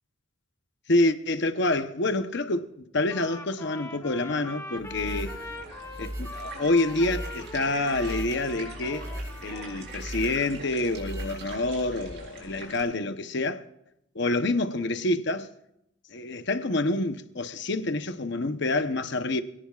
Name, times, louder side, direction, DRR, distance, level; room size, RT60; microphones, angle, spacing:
voice 1, 0.9-2.7 2.9-5.4 6.0-9.1 9.4-13.7 14.1-15.5 16.1-19.4, left 2 dB, 55° left, 0.9 m, -27 dB
Trumpet, 3.1-10.0, left 2 dB, 15° left, 1.0 m, -42 dB
sound 1, 4.8-11.9, equal, 15° right, 3.7 m, -39 dB
sound 2, 4.9-12.8, right 2 dB, 50° right, 4.4 m, -43 dB
27.0 x 17.5 x 2.4 m
head